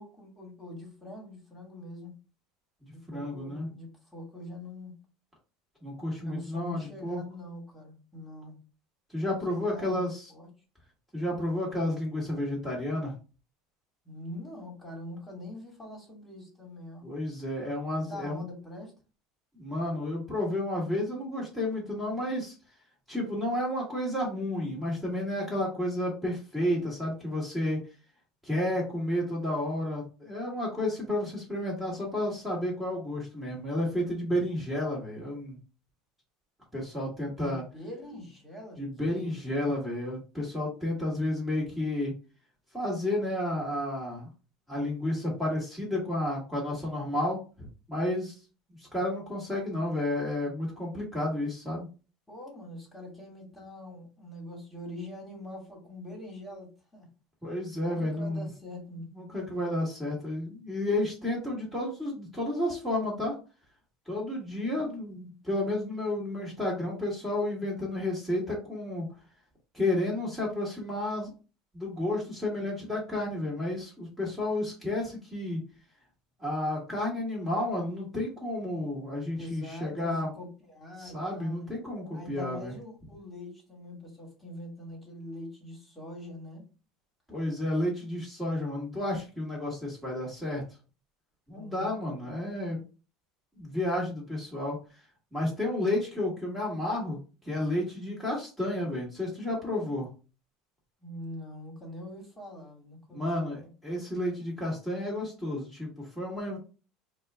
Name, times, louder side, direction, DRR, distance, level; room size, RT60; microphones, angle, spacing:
voice 1, 0.0-2.2 2.9-5.0 6.2-8.6 9.5-10.5 14.1-17.0 17.9-18.9 37.4-39.5 52.3-57.1 57.7-59.1 79.3-81.7 82.1-86.6 91.5-92.3 101.0-103.7, left 1 dB, 10° left, -2 dB, 1.7 m, -43 dB
voice 2, 3.1-3.7 5.8-7.2 9.1-10.2 11.1-13.1 17.0-18.4 19.6-22.5 23.1-27.8 28.4-35.6 36.7-37.6 38.8-42.1 42.7-44.3 44.7-48.4 48.9-51.9 57.4-58.5 59.1-63.4 64.1-69.1 69.7-71.3 71.7-75.6 76.4-80.3 81.0-82.7 87.3-90.6 91.5-92.8 93.6-94.8 95.3-97.2 97.4-100.1 103.1-106.6, left 1 dB, 5° right, -4 dB, 1.5 m, -31 dB
4.3 x 2.3 x 3.4 m, 0.34 s
supercardioid pair, 125°, 0 cm